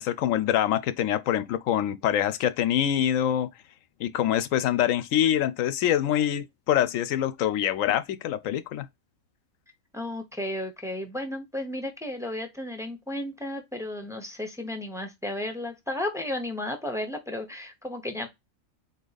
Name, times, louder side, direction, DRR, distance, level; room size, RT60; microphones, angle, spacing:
voice 1, 0.0-3.5 4.0-8.9, left 11 dB, 75° left, 1.0 m, -25 dB
voice 2, 9.9-18.3, left 1 dB, 5° right, 0.5 m, -33 dB
4.0 x 2.8 x 3.9 m
omnidirectional pair, 1.4 m